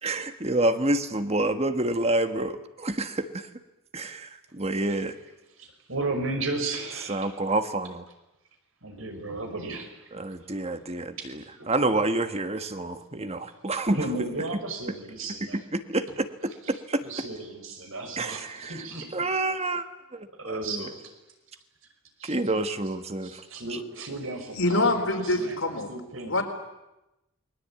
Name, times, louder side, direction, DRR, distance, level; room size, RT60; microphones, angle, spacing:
voice 1, 0.0-3.5 3.9-5.2 7.1-8.0 10.1-14.0 15.5-17.0 18.2-18.8 19.1-19.8 20.1-20.9 22.3-23.4, right 2 dB, 30° right, 9 dB, 1.4 m, -28 dB
voice 2, 5.6-7.3 8.8-9.9 11.2-11.7 13.9-15.7 16.6-16.8 17.0-19.1 20.4-21.1 22.2-22.4 23.2-25.6 25.9-26.4, right 2 dB, 75° right, 5 dB, 5.4 m, -34 dB
voice 3, 24.6-25.9 26.3-26.4, left 2 dB, 75° left, 3 dB, 4.1 m, -25 dB
29.0 x 21.5 x 8.8 m, 0.96 s
head